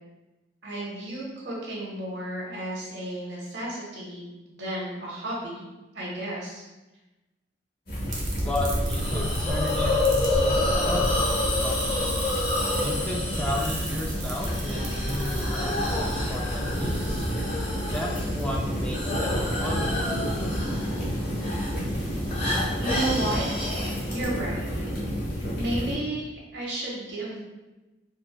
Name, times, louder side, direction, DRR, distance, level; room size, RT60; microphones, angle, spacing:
voice 1, 0.6-4.2 4.5-5.6 5.9-6.6 22.8-23.4 24.1-24.7 25.5-27.4, right 1 dB, 75° right, -5 dB, 0.9 m, -32 dB
sound 1, 7.9-25.9, equal, 55° left, 1.1 m, -30 dB
sound 2, 8.1-17.3, right 1 dB, 45° right, 0.6 m, -35 dB
voice 2, 8.4-12.0 12.7-17.2 17.8-19.3 19.6-20.4, left 1 dB, 5° left, -2 dB, 0.3 m, -34 dB
Hiss, 8.9-24.3, left 2 dB, 30° left, 0.8 m, -30 dB
4.1 x 2.3 x 2.2 m, 1.1 s
head